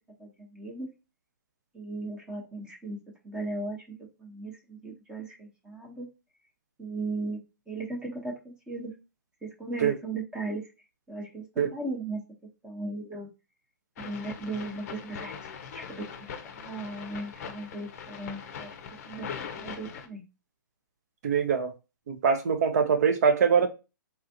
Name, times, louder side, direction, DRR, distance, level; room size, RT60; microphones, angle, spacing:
voice 1, 0.2-0.9 1.7-3.0 3.2-3.8 4.2-6.1 6.8-7.4 7.7-8.9 9.4-10.6 11.1-11.4 11.7-12.2 12.6-13.3 14.0-15.4 15.7-16.0 16.5-18.7 19.0-19.3 19.5-20.2, right 2 dB, 10° right, 0.8 m, -36 dB
sound 1, 14.0-20.1, left 6 dB, 45° left, 0.6 m, -41 dB
voice 2, 21.2-21.7 22.1-23.7, right 6 dB, 50° right, 0.7 m, -23 dB
3.5 x 2.4 x 2.7 m
figure-of-eight pair, 125°, 11 cm